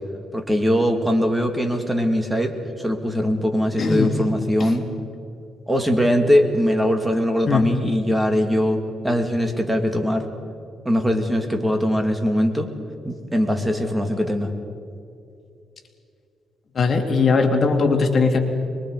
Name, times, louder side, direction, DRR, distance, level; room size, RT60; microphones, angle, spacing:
voice 1, 0.3-4.9 5.7-10.3 10.8-12.7 13.0-14.5, equal, 10° right, 5 dB, 2.6 m, -21 dB
voice 2, 3.8-4.1 4.6-4.7 7.5-7.7 16.7-18.4, left 4 dB, 45° left, 3 dB, 2.8 m, -19 dB
25.0 x 22.5 x 5.0 m, 2.6 s
cardioid pair, 90°, 0 cm